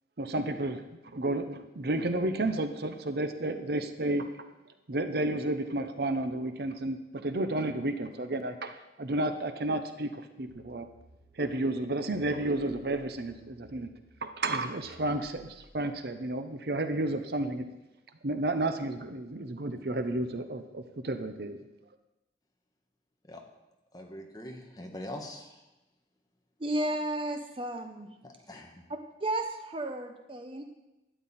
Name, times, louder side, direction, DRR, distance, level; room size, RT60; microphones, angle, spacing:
voice 1, 0.2-4.5 4.9-10.9 11.4-13.9 14.2-17.7 18.2-21.6, right 2 dB, 60° right, 9 dB, 0.7 m, -32 dB
sound 1, 10.5-15.8, equal, 80° right, 2.4 m, -59 dB
voice 2, 23.9-25.6 28.2-28.8, left 1 dB, 20° left, 2 dB, 1.3 m, -43 dB
voice 3, 26.6-28.1 29.2-30.6, right 1 dB, 30° right, 5 dB, 0.7 m, -33 dB
12.0 x 9.3 x 4.2 m, 0.97 s
head